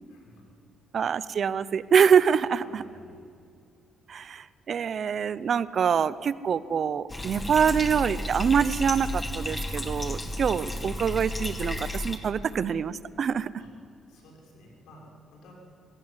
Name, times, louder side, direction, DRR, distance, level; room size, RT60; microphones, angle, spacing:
voice 1, 0.1-0.4 1.2-1.4 2.6-3.2 7.3-7.6 10.3-10.9 13.6-13.7 14.1-15.5, left 1 dB, 85° left, -1 dB, 6.2 m, -52 dB
voice 2, 0.9-2.8 4.1-13.5, right 7 dB, 55° right, 17 dB, 0.7 m, -25 dB
Bathtub (filling or washing), 7.1-12.2, left 1 dB, 20° left, 2.2 m, -32 dB
22.0 x 16.5 x 9.8 m, 2.3 s
cardioid pair, 90°, 0 cm